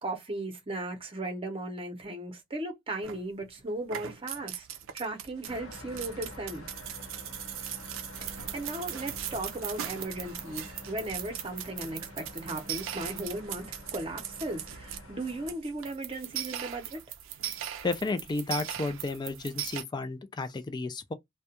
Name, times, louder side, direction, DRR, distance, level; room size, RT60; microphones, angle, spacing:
voice 1, 0.0-4.7 4.9-6.7 8.2-17.0, right 2 dB, 30° right, 0.7 m, -36 dB
sound 1, 3.0-3.5 3.8-19.8, right 10 dB, 75° right, 0.4 m, -39 dB
sound 2, 5.5-15.5, left 1 dB, 75° left, 0.9 m, -47 dB
voice 2, 17.8-21.1, left 3 dB, 20° left, 0.3 m, -32 dB
2.3 x 2.2 x 2.8 m
head